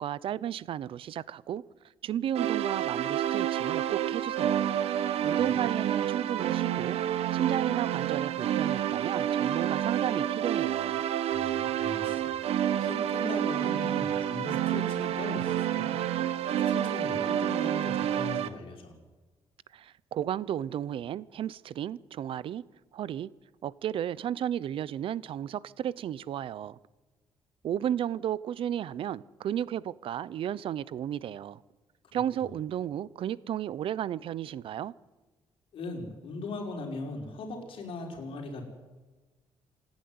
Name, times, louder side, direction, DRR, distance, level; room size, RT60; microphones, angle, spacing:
voice 1, 0.0-1.6 2.0-4.7 5.2-7.0 7.3-11.0 19.7-22.6 22.9-23.3 23.6-26.8 27.6-31.6 32.1-34.9, right 10 dB, 60° right, 0.7 m, -33 dB
sound 1, 2.3-18.5, right 11 dB, 80° right, 1.0 m, -29 dB
voice 2, 5.0-5.6 11.3-12.3 12.8-15.9 16.7-18.9 32.4-32.5 35.7-38.6, left 2 dB, 60° left, 5.5 m, -39 dB
27.0 x 10.5 x 9.6 m
cardioid pair, 150°, 10 cm